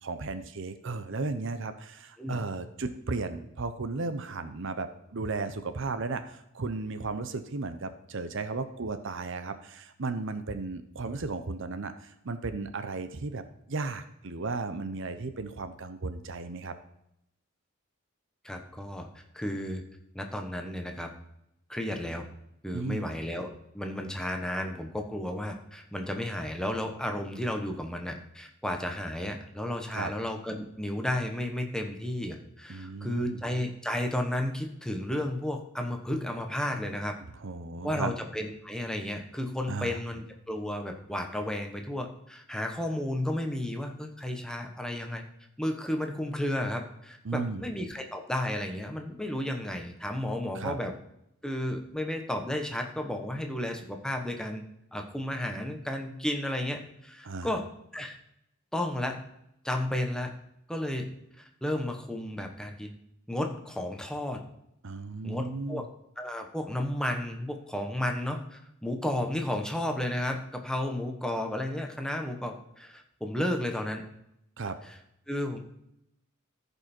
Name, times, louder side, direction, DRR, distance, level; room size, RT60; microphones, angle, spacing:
voice 1, 0.0-16.7 22.7-23.1 29.9-30.1 32.7-33.4 37.4-38.1 39.7-40.0 47.2-47.7 50.5-50.8 57.2-57.5 64.8-65.9 74.6-74.8, right 3 dB, 65° right, 10 dB, 0.8 m, -35 dB
voice 2, 18.4-19.8 20.1-21.1 21.7-22.2 22.6-37.2 37.8-45.2 45.6-50.9 51.4-54.6 54.9-57.7 57.9-58.1 58.7-59.2 59.6-60.3 60.7-61.1 61.4-62.9 63.3-64.4 65.2-65.9 66.2-74.0 74.8-75.0 75.3-75.6, left 1 dB, 5° left, 3 dB, 1.1 m, -33 dB
14.5 x 5.5 x 4.4 m, 0.79 s
head